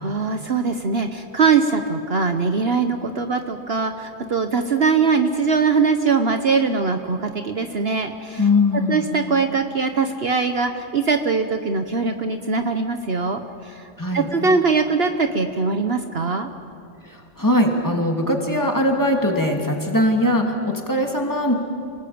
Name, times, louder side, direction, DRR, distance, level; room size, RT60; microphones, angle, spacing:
voice 1, 0.0-8.4 8.9-16.5, right 4 dB, 55° right, 7 dB, 1.2 m, -21 dB
voice 2, 8.4-9.0 14.0-14.3 17.0-21.5, left 1 dB, 15° left, 1 dB, 2.7 m, -20 dB
29.0 x 19.5 x 8.6 m, 2.5 s
omnidirectional pair, 1.3 m